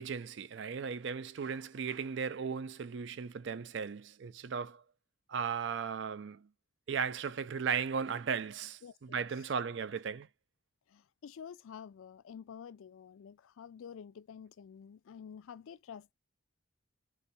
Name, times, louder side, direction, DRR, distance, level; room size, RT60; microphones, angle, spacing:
voice 1, 0.0-4.8 5.3-6.5 6.9-10.3, right 6 dB, 55° right, 0.4 m, -36 dB
voice 2, 8.8-9.3 10.9-16.1, left 7 dB, 75° left, 0.3 m, -49 dB
4.3 x 2.6 x 4.1 m
head